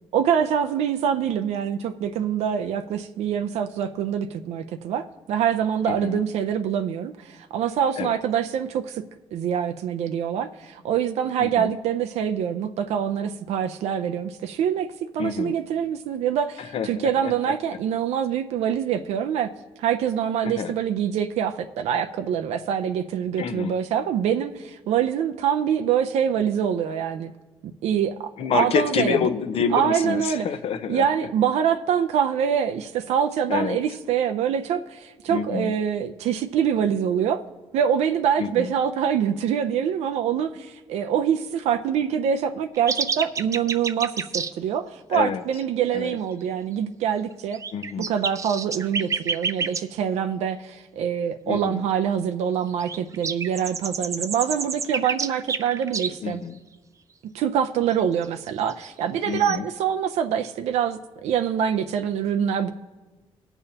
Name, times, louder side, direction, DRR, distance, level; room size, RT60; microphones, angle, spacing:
voice 1, 0.1-9.0 9.3-14.9 15.1-19.5 19.8-27.3 27.8-29.3 29.7-30.5 30.9-37.4 37.7-47.6 48.1-56.4 57.3-62.7, right 8 dB, 90° right, 0.5 m, -25 dB
voice 2, 5.9-6.2 8.0-8.1 11.4-11.7 15.2-15.5 16.6-17.5 20.4-20.7 23.4-23.8 28.4-31.1 33.5-33.8 35.3-35.7 38.4-38.7 45.1-45.4 45.9-46.2 47.7-48.1 51.4-51.8 56.2-56.6 59.2-59.6, left 7 dB, 65° left, 0.7 m, -28 dB
sound 1, 42.7-44.5 47.3-49.8 52.8-56.1 57.9-58.0 58.2-58.9 59.3-59.6, right 5 dB, 30° right, 0.4 m, -29 dB
19.0 x 6.9 x 2.8 m
cardioid pair, 105°, 11 cm